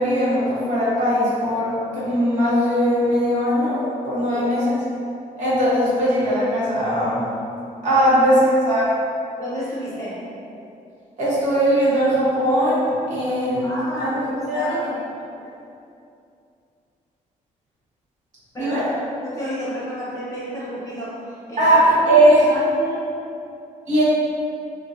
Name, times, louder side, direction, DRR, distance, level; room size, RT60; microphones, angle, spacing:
voice 1, 0.0-3.8 4.0-4.6 5.4-7.3 7.8-8.3 8.6-8.9 11.2-13.7 14.0-14.2 14.5-14.7 18.6-18.8 21.6-22.4 23.9-24.0, equal, 55° right, -9 dB, 1.1 m, -19 dB
voice 2, 4.2-4.5 7.9-8.3 9.4-10.2 13.6-15.0 18.5-23.1, equal, 20° left, -8 dB, 0.8 m, -31 dB
3.7 x 2.6 x 2.6 m, 2.6 s
cardioid pair, 150°, 15 cm